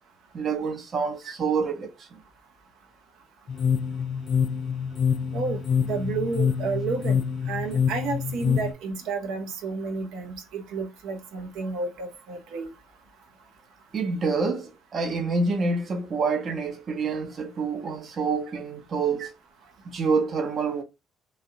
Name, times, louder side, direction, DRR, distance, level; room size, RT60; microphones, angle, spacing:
voice 1, 0.3-2.2 13.9-19.3 19.8-20.8, right 4 dB, 50° right, 0.7 m, -27 dB
sound 1, 3.5-8.7, left 7 dB, 50° left, 0.3 m, -26 dB
voice 2, 5.3-7.2 7.5-12.7 19.2-19.3, right 4 dB, 80° right, 0.8 m, -31 dB
3.2 x 2.4 x 2.7 m
supercardioid pair, 70°, 0 cm